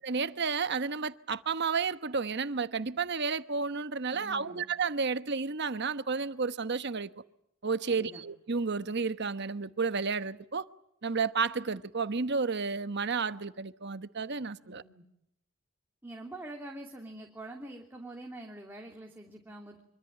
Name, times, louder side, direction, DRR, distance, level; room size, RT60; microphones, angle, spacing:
voice 1, 0.0-7.1 7.6-10.7 11.0-14.8, right 5 dB, 55° right, 1.1 m, -31 dB
voice 2, 4.1-4.6 7.9-8.2 14.6-15.0 16.0-19.8, right 1 dB, 10° right, 2.9 m, -45 dB
25.0 x 24.5 x 8.8 m
head